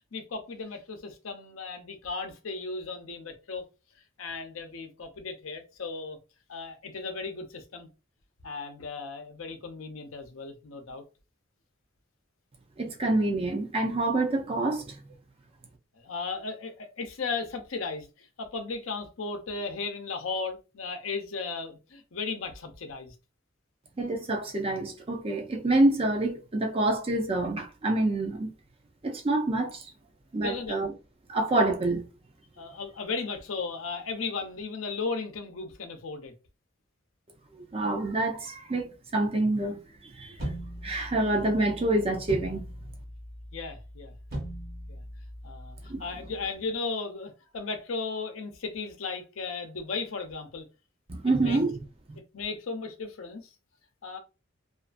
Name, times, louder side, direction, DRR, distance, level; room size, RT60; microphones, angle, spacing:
voice 1, 0.1-3.6 4.2-6.2 6.5-7.9 8.4-11.0 15.9-23.1 30.4-30.8 32.6-36.3 43.5-44.1 44.9-45.0 45.4-50.7 51.4-51.6 52.3-53.5 54.0-54.2, left 4 dB, 90° left, 0.6 m, -36 dB
voice 2, 12.8-14.9 24.0-28.5 29.0-29.9 30.3-30.9 31.3-32.1 37.7-39.8 40.2-40.4 40.8-42.6 45.9-46.0 51.1-51.8 52.1-52.2, right 2 dB, 30° right, 0.5 m, -27 dB
sound 1, 40.4-46.4, equal, 50° right, 1.1 m, -40 dB
2.5 x 2.4 x 2.5 m
head